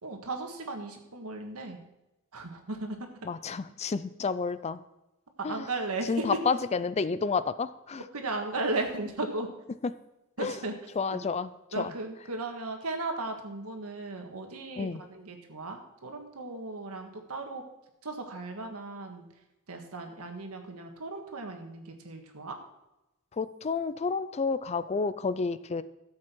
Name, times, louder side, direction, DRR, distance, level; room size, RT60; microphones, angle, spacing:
voice 1, 0.0-1.8 2.3-3.0 5.4-6.4 8.1-9.5 10.4-10.7 11.1-11.2 11.7-17.6 18.0-19.3 19.7-22.5, right 2 dB, 90° right, 4 dB, 1.7 m, -36 dB
voice 2, 3.3-4.8 5.4-5.7 6.1-8.0 10.4-10.6 11.0-11.5 11.8-11.9 14.8-15.0 23.3-25.8, left 4 dB, 30° left, 15 dB, 0.4 m, -30 dB
13.5 x 7.6 x 4.5 m, 0.94 s
head